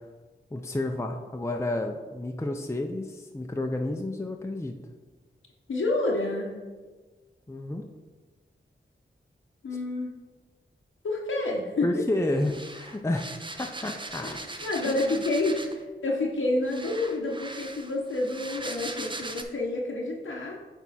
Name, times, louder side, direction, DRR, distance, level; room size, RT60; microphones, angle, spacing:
voice 1, 0.5-4.8 7.5-7.9 9.7-9.8 11.8-13.3 13.6-14.4 14.8-15.2, left 1 dB, 15° left, 3 dB, 0.6 m, -31 dB
voice 2, 5.7-6.5 9.6-10.1 11.0-12.0 14.2-15.7 16.0-20.6, left 2 dB, 85° left, -3 dB, 1.0 m, -29 dB
sound 1, 12.4-15.9 16.7-19.4, right 2 dB, 25° right, 0.7 m, -40 dB
8.8 x 3.6 x 4.2 m, 1.3 s
cardioid pair, 40°, 20 cm